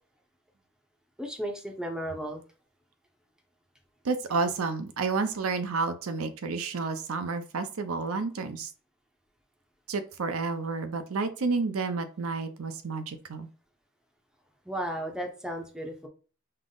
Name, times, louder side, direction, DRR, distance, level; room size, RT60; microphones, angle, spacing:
voice 1, 1.2-2.4 14.7-16.1, equal, 5° right, 2 dB, 0.7 m, -34 dB
voice 2, 4.0-8.7 9.9-13.5, right 4 dB, 85° right, 9 dB, 0.6 m, -30 dB
5.5 x 2.0 x 3.8 m, 0.37 s
head